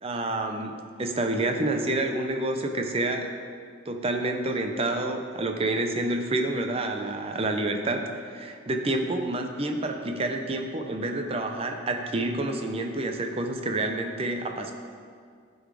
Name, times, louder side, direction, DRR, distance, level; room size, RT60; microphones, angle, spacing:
voice 1, 0.0-3.3 3.9-14.7, right 2 dB, 30° right, 4 dB, 0.6 m, -28 dB
11.5 x 4.0 x 4.7 m, 2.1 s
head